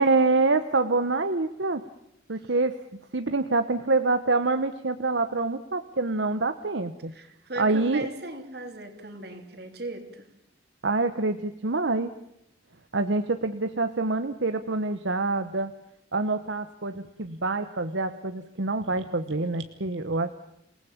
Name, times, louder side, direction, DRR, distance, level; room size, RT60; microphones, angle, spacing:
voice 1, 0.0-1.8 2.3-2.8 3.1-7.1 7.6-8.1 10.8-12.1 12.9-15.7 16.1-20.3, right 3 dB, 75° right, 9 dB, 1.1 m, -26 dB
voice 2, 7.1-10.3, right 2 dB, 55° right, 6 dB, 3.5 m, -38 dB
28.0 x 19.0 x 7.3 m, 0.79 s
head